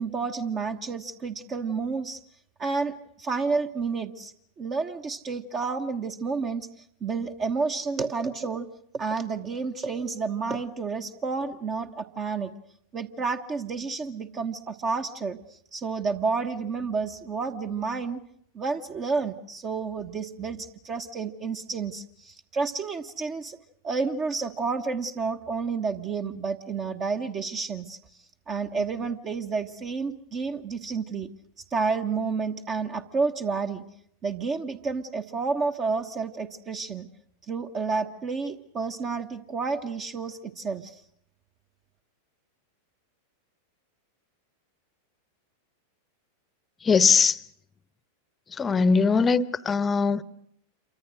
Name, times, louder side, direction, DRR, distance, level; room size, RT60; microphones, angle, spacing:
voice 1, 0.0-2.2 2.6-6.7 7.0-8.7 8.9-12.5 12.9-15.4 15.7-18.2 18.5-23.6 23.8-28.0 28.5-31.3 31.7-33.8 34.2-37.1 37.5-41.0, right 4 dB, 25° right, 1.2 m, -30 dB
voice 2, 46.8-47.4 48.6-50.2, left 5 dB, 20° left, 1.0 m, -21 dB
28.0 x 24.0 x 6.4 m
figure-of-eight pair, 90°, 0 cm